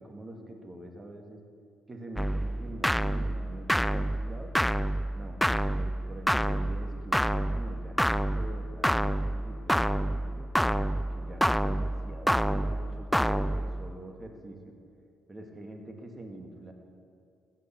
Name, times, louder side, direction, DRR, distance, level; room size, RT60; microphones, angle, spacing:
voice 1, 0.0-1.4 1.9-4.5 5.1-10.5 10.9-14.7 15.3-16.7, right 1 dB, 25° right, 3 dB, 2.0 m, -45 dB
sound 1, 2.2-13.9, equal, 5° left, 0.3 m, -28 dB
15.5 x 5.5 x 6.9 m, 2.4 s
hypercardioid pair, 50°, 0 cm